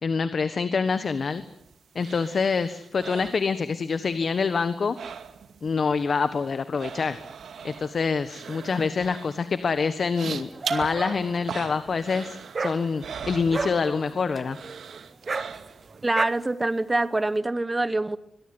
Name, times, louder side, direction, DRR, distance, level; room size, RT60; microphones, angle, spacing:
voice 1, 0.0-1.4 1.9-5.0 5.6-7.2 7.6-14.6, left 5 dB, 50° left, 1.4 m, -26 dB
Rough Breathing, 1.0-4.1 4.3-5.7 6.0-14.1 14.5-16.0 16.4-16.5, right 7 dB, 85° right, 2.3 m, -40 dB
Dog, 10.2-16.3, right 4 dB, 35° right, 1.2 m, -34 dB
voice 2, 16.0-18.2, right 2 dB, 20° right, 1.1 m, -25 dB
22.5 x 22.5 x 9.7 m
wide cardioid pair, 155°, 0 cm